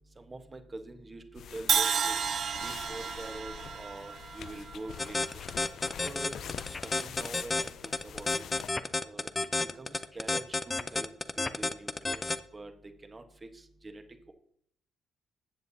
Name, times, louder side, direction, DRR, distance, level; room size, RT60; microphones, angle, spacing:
voice 1, 0.2-2.1 2.6-5.3 6.0-6.3 6.6-8.4 9.0-11.1 11.4-12.7 13.0-14.3, right 2 dB, 25° right, 6 dB, 1.3 m, -45 dB
sound 1, 1.4-8.7, left 8 dB, 70° left, 0.4 m, -45 dB
Crash cymbal, 1.7-5.7, right 7 dB, 55° right, 0.6 m, -32 dB
sound 2, 5.0-12.4, left 3 dB, 20° left, 0.6 m, -30 dB
14.5 x 7.9 x 2.8 m, 0.66 s
cardioid pair, 90°, 0 cm